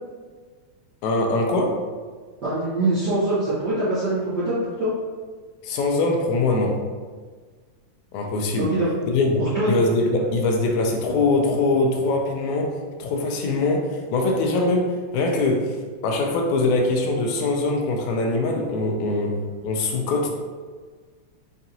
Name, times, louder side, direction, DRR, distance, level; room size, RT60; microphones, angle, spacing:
voice 1, 1.0-1.8 5.6-6.8 8.1-8.7 9.1-9.4 9.7-12.7 13.0-15.8 16.0-19.3 19.6-20.3, left 2 dB, 85° left, 1 dB, 2.0 m, -22 dB
voice 2, 2.4-4.9 8.6-8.9 9.4-9.8, right 1 dB, 65° right, -12 dB, 1.0 m, -23 dB
5.7 x 2.5 x 2.7 m, 1.5 s
omnidirectional pair, 3.3 m